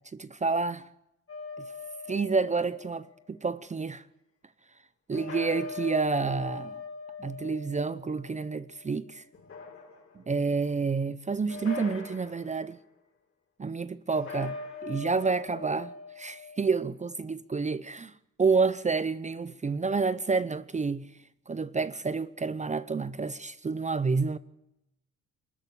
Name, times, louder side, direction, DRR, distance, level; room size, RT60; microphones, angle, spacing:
voice 1, 0.1-0.9 1.6-1.7 2.1-4.0 5.1-6.8 7.2-9.2 10.2-12.8 13.6-18.1 18.4-21.0 21.5-24.4, right 4 dB, 25° right, 0.7 m, -29 dB
sound 1, 1.3-3.3 5.1-8.8 9.3-10.3 11.5-12.6 14.1-16.8, left 4 dB, 45° left, 7.0 m, -41 dB
24.0 x 13.5 x 8.6 m
cardioid pair, 90°, 30 cm